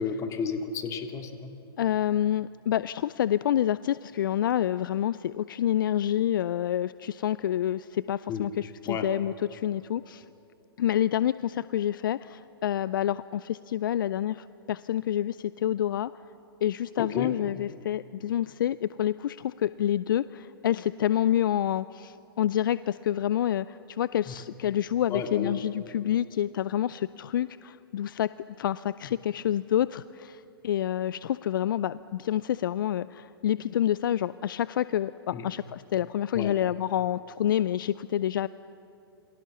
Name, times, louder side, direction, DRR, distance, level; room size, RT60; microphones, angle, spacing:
voice 1, 0.0-1.5 8.3-8.5 8.9-9.1 17.0-17.3 24.3-24.4 25.1-25.5 35.3-35.5 36.3-36.6, left 6 dB, 25° left, 5 dB, 2.3 m, -32 dB
voice 2, 1.8-10.2 10.8-16.1 16.6-28.3 28.6-38.5, left 11 dB, 55° left, 17 dB, 0.5 m, -28 dB
28.0 x 24.0 x 7.2 m, 2.8 s
figure-of-eight pair, 115°, 13 cm